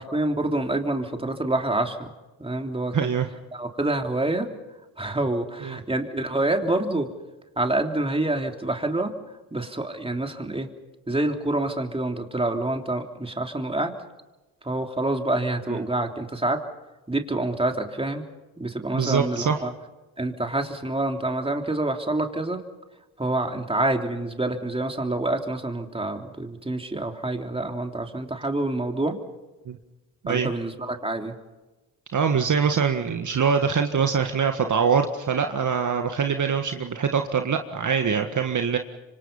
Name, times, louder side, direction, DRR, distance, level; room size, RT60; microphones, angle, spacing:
voice 1, 0.0-2.1 2.4-3.1 3.5-4.5 5.0-7.1 7.6-9.2 9.5-10.7 11.1-13.9 14.6-16.6 17.1-18.2 18.6-19.7 20.2-22.6 23.2-29.2 30.3-31.3, right 2 dB, 15° right, 4 dB, 3.3 m, -27 dB
voice 2, 2.9-3.3 5.6-5.8 15.7-15.8 18.9-19.6 29.7-29.8 30.2-30.5 32.1-38.8, right 6 dB, 50° right, 5 dB, 1.7 m, -23 dB
27.0 x 25.0 x 5.7 m, 1.1 s
supercardioid pair, 55°, 40 cm